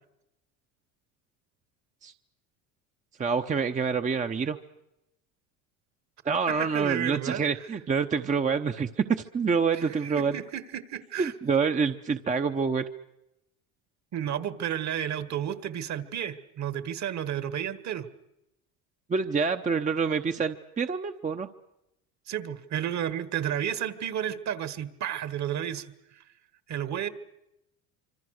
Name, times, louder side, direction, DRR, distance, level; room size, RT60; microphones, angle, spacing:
voice 1, 3.2-4.6 6.2-10.4 11.2-12.8 19.1-21.5, right 5 dB, 20° right, 7 dB, 0.8 m, -27 dB
voice 2, 6.5-7.4 9.7-11.3 14.1-18.1 22.3-25.9 26.7-27.1, right 10 dB, 45° right, 14 dB, 1.6 m, -32 dB
25.5 x 25.5 x 6.5 m, 0.88 s
supercardioid pair, 100°, 40 cm